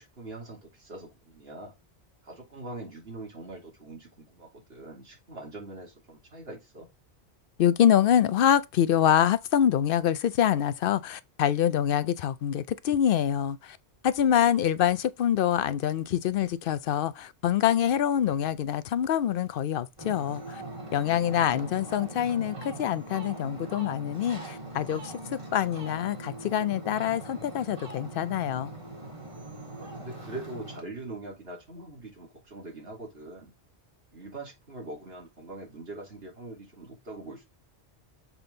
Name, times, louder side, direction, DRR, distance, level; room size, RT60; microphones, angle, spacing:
voice 1, 0.0-1.7 2.2-6.9 21.0-21.7 29.8-33.5 34.1-37.5, right 2 dB, 60° right, 2.7 m, -43 dB
voice 2, 7.6-13.8 14.0-20.6 20.9-28.7, left 10 dB, 60° left, 0.7 m, -25 dB
Ocean, 20.0-30.8, right 2 dB, 30° right, 1.7 m, -41 dB
7.0 x 3.7 x 3.8 m
omnidirectional pair, 1.1 m